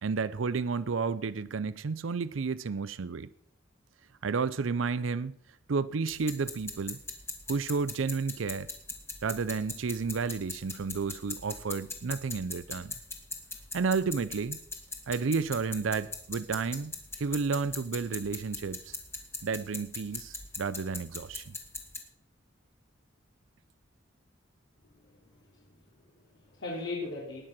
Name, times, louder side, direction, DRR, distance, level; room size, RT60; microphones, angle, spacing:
voice 1, 0.0-3.3 4.2-5.4 5.7-7.0 7.5-8.7 9.2-12.9 13.7-14.6 15.1-19.0 19.4-21.6, right 4 dB, 85° right, 0.5 m, -31 dB
sound 1, 6.1-22.0, left 3 dB, 15° left, 2.2 m, -41 dB
voice 2, 24.9-27.5, left 3 dB, 70° left, 3.4 m, -40 dB
19.5 x 7.6 x 6.0 m
head